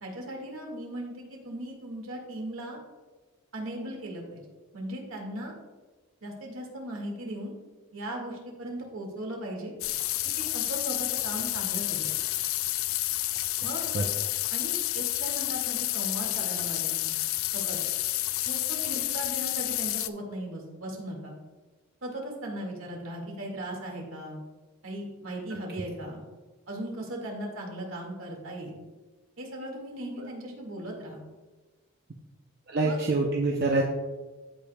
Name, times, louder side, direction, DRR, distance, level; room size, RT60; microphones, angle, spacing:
voice 1, 0.0-2.8 3.5-4.4 4.7-5.5 6.2-7.5 7.9-9.7 10.5-12.1 13.6-13.9 14.5-17.1 17.5-17.8 18.4-21.3 22.0-24.4 24.8-26.2 26.7-28.8 29.4-31.2 32.8-33.0, right 1 dB, 70° right, 0 dB, 2.1 m, -37 dB
sound 1, 9.8-20.1, left 16 dB, 70° left, 0.3 m, -30 dB
voice 2, 32.7-33.8, right 2 dB, 45° right, 0 dB, 0.6 m, -25 dB
15.5 x 5.3 x 2.3 m, 1.3 s
head